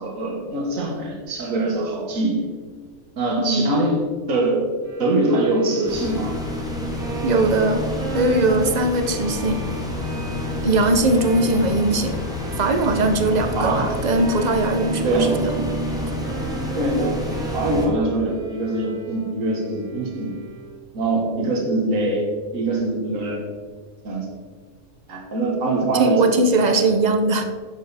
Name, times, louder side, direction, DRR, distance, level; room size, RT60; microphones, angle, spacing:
voice 1, 0.0-2.5 3.2-6.4 13.6-14.0 15.0-15.5 16.8-17.2 17.5-20.4 20.9-22.3 22.5-23.4 24.0-24.3 25.1-26.9, right 2 dB, 65° right, 0 dB, 1.9 m, -23 dB
voice 2, 3.4-3.8 7.2-7.8 8.1-9.6 10.6-12.1 12.6-15.5 21.3-21.6 26.0-27.4, right 2 dB, 35° right, 7 dB, 0.8 m, -20 dB
Bowed string instrument, 4.8-20.9, right 3 dB, 85° right, 2.3 m, -37 dB
sound 1, 5.9-17.9, left 1 dB, 5° right, 1.5 m, -28 dB
11.0 x 7.4 x 4.2 m, 1.5 s
omnidirectional pair, 1.5 m